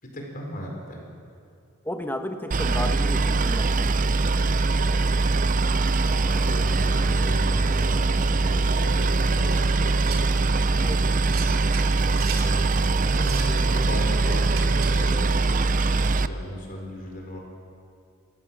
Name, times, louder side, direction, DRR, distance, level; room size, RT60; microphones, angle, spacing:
voice 1, 0.0-1.0 4.7-5.1 6.3-10.3 12.4-15.3 16.2-17.4, equal, 40° left, 0 dB, 4.6 m, -36 dB
voice 2, 1.8-3.9 10.8-11.1, left 1 dB, 10° left, 5 dB, 1.2 m, -33 dB
Boat Water vehicle, 2.5-16.3, right 3 dB, 40° right, 0.6 m, -22 dB
sound 1, 10.0-10.4 11.3-12.5 13.1-13.6 14.5-15.1, right 7 dB, 85° right, 2.9 m, -37 dB
27.5 x 15.5 x 7.4 m, 2.5 s
head